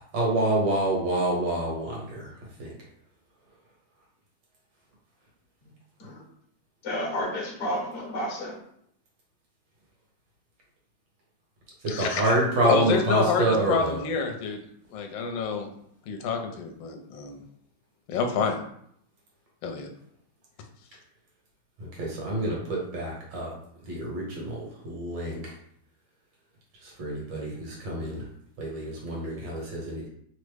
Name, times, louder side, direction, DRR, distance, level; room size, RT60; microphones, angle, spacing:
voice 1, 0.1-2.3 2.6-2.7 11.8-14.0 22.0-23.5 23.9-25.4 26.8-28.2 28.6-30.1, right 2 dB, 70° right, -3 dB, 1.7 m, -27 dB
voice 2, 6.8-8.6, equal, 50° left, -3 dB, 1.0 m, -31 dB
voice 3, 11.9-12.3 12.6-14.6 14.9-15.7 16.1-17.4 18.1-18.6 19.6-19.9, left 5 dB, 75° left, 3 dB, 1.3 m, -27 dB
3.6 x 2.1 x 3.2 m, 0.68 s
omnidirectional pair, 2.1 m